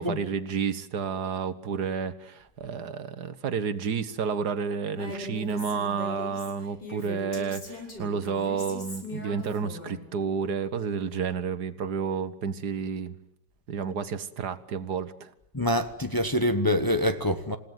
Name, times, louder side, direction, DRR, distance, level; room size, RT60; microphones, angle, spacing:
voice 1, 0.0-13.1 13.7-15.3, right 6 dB, 70° right, 1.8 m, -30 dB
Female speech woman speaking, 4.9-10.0, left 1 dB, 80° left, 7.4 m, -40 dB
voice 2, 15.5-17.6, left 1 dB, 15° left, 1.2 m, -25 dB
29.0 x 17.5 x 9.2 m
omnidirectional pair, 1.8 m